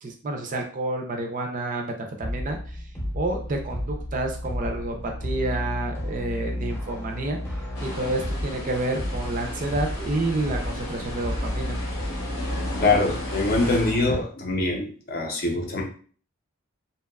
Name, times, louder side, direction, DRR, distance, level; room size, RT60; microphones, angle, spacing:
voice 1, 0.0-1.9 2.2-2.8 3.1-7.4 7.8-11.8, right 2 dB, 40° right, 3 dB, 0.4 m, -29 dB
sound 1, 2.2-14.2, left 1 dB, 10° left, 0.7 m, -32 dB
sound 2, 7.7-13.9, left 1 dB, 75° left, 0.9 m, -35 dB
voice 2, 12.8-15.8, left 2 dB, 45° left, 1 dB, 0.5 m, -24 dB
2.7 x 2.2 x 2.3 m, 0.42 s
head